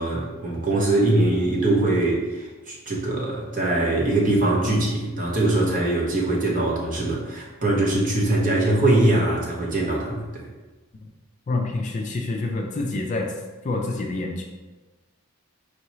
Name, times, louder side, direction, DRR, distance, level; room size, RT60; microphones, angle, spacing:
voice 1, 0.0-10.5, right 2 dB, 35° right, -3 dB, 0.8 m, -22 dB
voice 2, 11.5-13.3 13.6-14.4, left 2 dB, 35° left, 2 dB, 0.3 m, -27 dB
4.5 x 2.8 x 3.0 m, 1.2 s
head